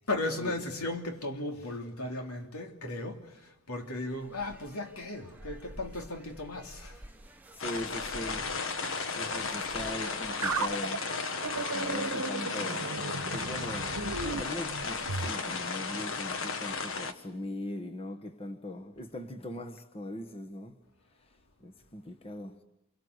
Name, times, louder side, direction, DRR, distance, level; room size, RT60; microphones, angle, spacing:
voice 1, 0.1-7.0, left 2 dB, 80° left, 3.3 m, -36 dB
sound 1, 3.7-10.9, right 1 dB, 10° right, 1.1 m, -51 dB
voice 2, 7.3-11.1 11.7-13.0 13.3-13.9 14.2-20.8 21.2-22.6, left 1 dB, 25° left, 1.4 m, -40 dB
sound 2, 7.6-17.1, left 4 dB, 60° left, 1.6 m, -35 dB
sound 3, 10.4-15.3, right 4 dB, 90° right, 1.3 m, -35 dB
27.5 x 24.0 x 8.1 m
head